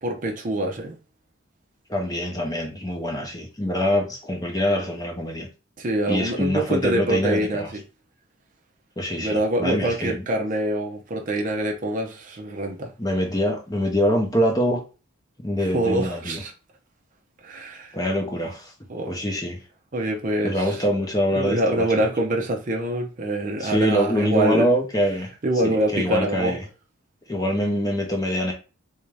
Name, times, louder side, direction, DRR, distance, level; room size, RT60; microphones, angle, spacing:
voice 1, 0.0-0.9 5.8-7.8 9.2-12.9 15.7-16.5 17.4-18.0 18.9-19.1 19.9-20.8 21.3-24.7 25.4-26.6, right 1 dB, 35° right, 0.5 m, -25 dB
voice 2, 1.9-5.5 6.1-7.7 9.0-10.2 13.0-14.8 15.4-16.4 17.9-18.7 19.1-19.6 20.4-21.9 23.6-25.3 25.6-26.6 27.3-28.5, equal, 15° left, 0.7 m, -24 dB
3.5 x 2.6 x 3.2 m
head